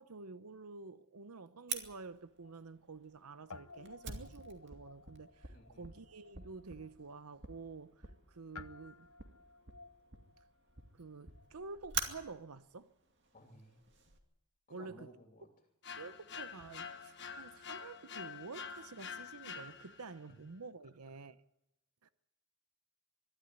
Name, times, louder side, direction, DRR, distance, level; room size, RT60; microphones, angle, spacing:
voice 1, 0.0-9.1 10.9-12.9 14.7-15.1 16.0-21.4 22.0-22.1, right 4 dB, 85° right, 0.9 m, -49 dB
Guitar, 1.4-3.2 3.5-12.1, left 4 dB, 75° left, 0.9 m, -58 dB
Fire, 1.7-14.2, right 6 dB, 50° right, 2.4 m, -47 dB
voice 2, 5.5-5.9 13.3-13.8 14.7-15.5, left 1 dB, 35° left, 2.9 m, -57 dB
sound 1, 15.8-20.2, left 6 dB, 50° left, 1.4 m, -47 dB
23.5 x 12.5 x 9.8 m
head